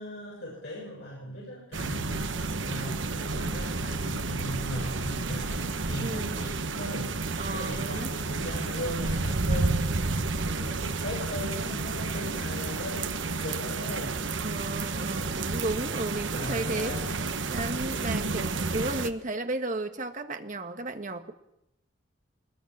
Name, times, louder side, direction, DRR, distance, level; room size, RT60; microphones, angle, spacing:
voice 1, 0.0-9.9 10.3-14.2 16.3-17.2, equal, 60° left, -4 dB, 7.4 m, -38 dB
sound 1, 1.7-19.1, right 3 dB, 75° right, 1.3 m, -31 dB
voice 2, 6.0-6.4 7.4-8.1 14.4-17.0 17.5-21.3, right 2 dB, 40° right, 7 dB, 1.7 m, -34 dB
24.0 x 20.5 x 7.4 m, 0.82 s
head